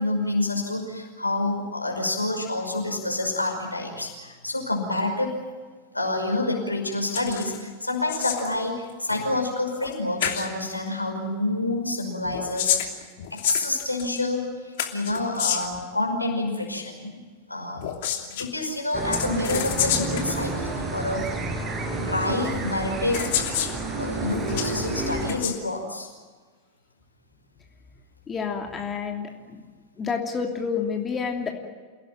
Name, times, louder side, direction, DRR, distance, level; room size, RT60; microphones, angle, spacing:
voice 1, 0.0-5.4 5.9-12.8 13.3-17.2 17.5-17.9 18.3-21.5 22.0-23.3 24.0-26.1 31.3-31.4, left 2 dB, 85° left, 2 dB, 5.5 m, -28 dB
sound 1, 7.1-7.6 7.8-8.5 9.8-9.9 10.2-10.5 12.2-14.2 14.8-15.8 17.8-18.5 19.1-20.3 21.3-21.4 22.4-22.5 23.1-23.7 24.2-24.7 25.2-25.6, left 10 dB, 55° left, 2.9 m, -28 dB
sound 2, 18.9-25.4, right 2 dB, 25° right, 4.8 m, -30 dB
voice 2, 28.3-29.6 30.0-31.5, left 6 dB, 20° left, 3 dB, 2.9 m, -29 dB
28.0 x 18.0 x 9.2 m, 1.4 s
figure-of-eight pair, 90°, 0 cm